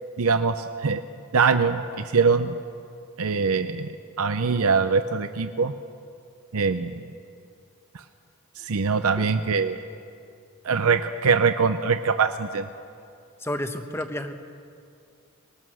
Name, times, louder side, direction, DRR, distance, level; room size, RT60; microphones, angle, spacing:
voice 1, 0.2-1.0 1.3-2.5 3.2-3.9 4.2-5.7 6.5-7.0 8.6-9.8 10.6-12.7, right 5 dB, 80° right, 9 dB, 0.6 m, -23 dB
voice 2, 13.4-14.3, left 1 dB, 10° left, 8 dB, 0.9 m, -31 dB
21.0 x 19.5 x 6.4 m, 2.4 s
head